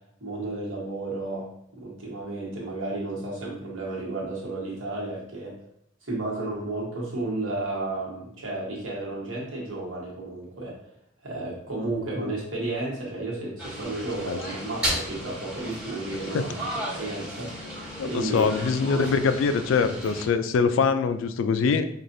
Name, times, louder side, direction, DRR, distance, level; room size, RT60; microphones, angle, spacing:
voice 1, 0.2-5.6 6.0-10.8 11.2-16.6 16.9-18.5 18.8-19.1, right 2 dB, 85° right, -4 dB, 1.3 m, -33 dB
sound 1, 13.6-20.3, equal, 5° right, 1.1 m, -34 dB
voice 2, 18.0-21.9, left 5 dB, 75° left, 10 dB, 0.3 m, -23 dB
4.8 x 2.4 x 2.6 m, 0.71 s
head